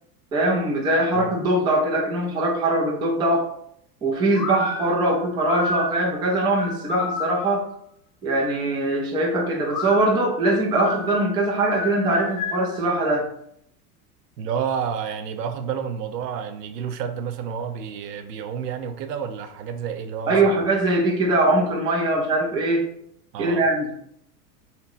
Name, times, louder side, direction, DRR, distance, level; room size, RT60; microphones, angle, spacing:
voice 1, 0.3-3.5 4.0-7.7 8.2-13.3 20.3-22.8 23.4-23.9, right 2 dB, 10° right, -1 dB, 0.3 m, -22 dB
sound 1, 4.3-7.7 9.7-12.8, left 3 dB, 40° left, 0.6 m, -31 dB
voice 2, 14.4-20.6 23.3-23.6, right 7 dB, 85° right, 8 dB, 0.6 m, -30 dB
2.8 x 2.2 x 3.7 m, 0.70 s
hypercardioid pair, 110°, 47 cm